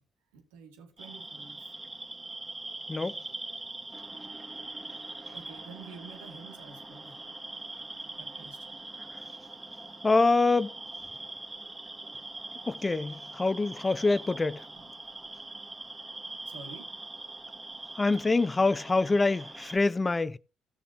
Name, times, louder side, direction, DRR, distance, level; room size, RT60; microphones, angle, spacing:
voice 1, 0.3-1.7 5.3-7.2 8.0-9.1 14.7-14.8 16.5-16.9, right 5 dB, 85° right, 2.2 m, -49 dB
sound 1, 1.0-19.8, right 2 dB, 15° right, 2.3 m, -43 dB
voice 2, 10.0-10.7 12.7-14.7 18.0-20.4, left 3 dB, 25° left, 0.5 m, -25 dB
17.0 x 6.8 x 2.9 m
hypercardioid pair, 55°, 0 cm